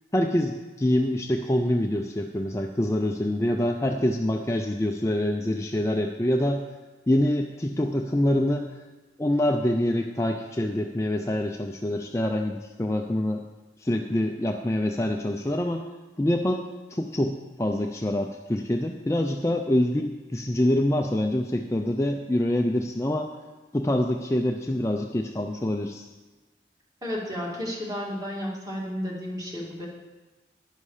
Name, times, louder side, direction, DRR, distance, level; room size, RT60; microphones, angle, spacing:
voice 1, 0.1-6.6 7.1-8.7 9.2-13.4 13.8-15.9 16.2-23.3 23.7-26.1, left 1 dB, 15° left, 3 dB, 0.5 m, -25 dB
voice 2, 27.0-29.9, equal, 20° right, -3 dB, 2.4 m, -32 dB
11.0 x 11.0 x 4.9 m, 1.2 s
head